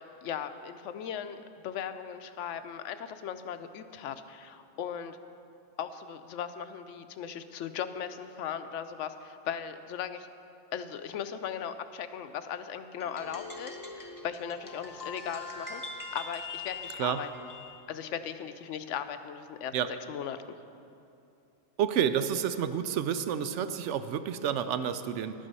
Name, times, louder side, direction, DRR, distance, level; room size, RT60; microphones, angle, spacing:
voice 1, 0.0-5.2 5.8-10.3 10.7-17.5 17.9-20.4, left 8 dB, 80° left, 10 dB, 0.9 m, -38 dB
sound 1, 13.0-17.8, left 4 dB, 20° left, 0.8 m, -42 dB
voice 2, 21.8-25.3, right 8 dB, 80° right, 11 dB, 0.9 m, -29 dB
11.5 x 8.7 x 5.4 m, 2.6 s
omnidirectional pair, 1.2 m